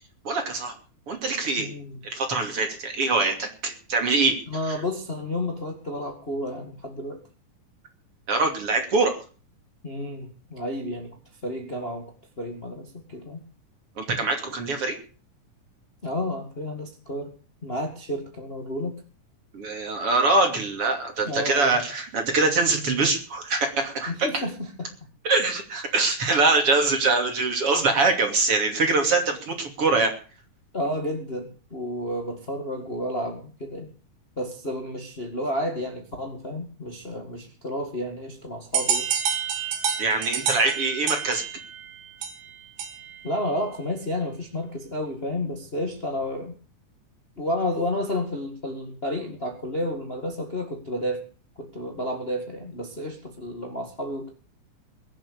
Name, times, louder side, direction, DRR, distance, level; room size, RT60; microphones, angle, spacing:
voice 1, 0.3-0.7 1.1-1.7 2.0-4.4 4.7-4.8 8.3-9.2 14.0-15.0 19.5-24.4 25.2-30.1 40.0-41.5, right 3 dB, 45° right, 4 dB, 3.4 m, -23 dB
voice 2, 1.6-2.0 4.5-7.2 9.8-11.1 11.4-12.1 12.4-13.4 16.0-17.3 17.6-19.0 21.2-21.8 24.1-24.5 30.7-33.9 34.4-39.1 43.2-46.5 47.4-51.2 51.6-54.3, left 1 dB, 20° left, 3 dB, 1.7 m, -31 dB
sound 1, 38.7-43.3, right 7 dB, 85° right, 4.0 m, -28 dB
22.0 x 7.7 x 6.9 m, 0.39 s
omnidirectional pair, 3.8 m